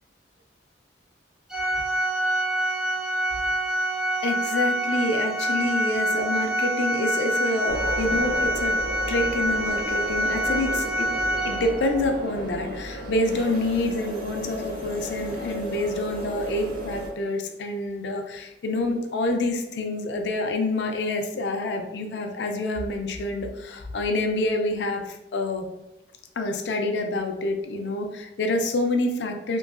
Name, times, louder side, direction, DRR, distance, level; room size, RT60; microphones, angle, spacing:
Organ, 1.5-12.1, right 1 dB, 5° right, 0.4 m, -26 dB
voice 1, 4.2-8.8 9.1-11.1 11.4-15.9 16.3-25.7 26.4-29.6, left 2 dB, 70° left, 5 dB, 0.4 m, -27 dB
sound 1, 7.7-17.1, equal, 55° right, 0.6 m, -34 dB
3.0 x 2.6 x 2.5 m, 0.93 s
head